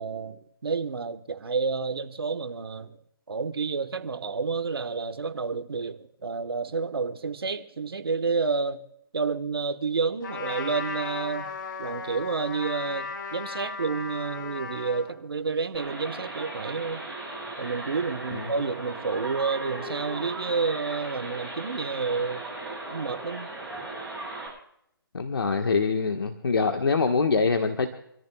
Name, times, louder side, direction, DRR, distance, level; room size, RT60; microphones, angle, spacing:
voice 1, 0.0-2.9 3.3-8.8 9.1-11.5 11.8-17.0 17.6-22.5 22.9-23.5, right 4 dB, 75° right, 1.4 m, -30 dB
Trumpet, 10.2-15.1, left 4 dB, 50° left, 3.5 m, -36 dB
sound 1, 15.7-24.5, right 2 dB, 5° left, 7.8 m, -37 dB
voice 2, 25.1-27.9, left 4 dB, 70° left, 1.4 m, -24 dB
28.0 x 14.0 x 2.4 m
hypercardioid pair, 150°, 13 cm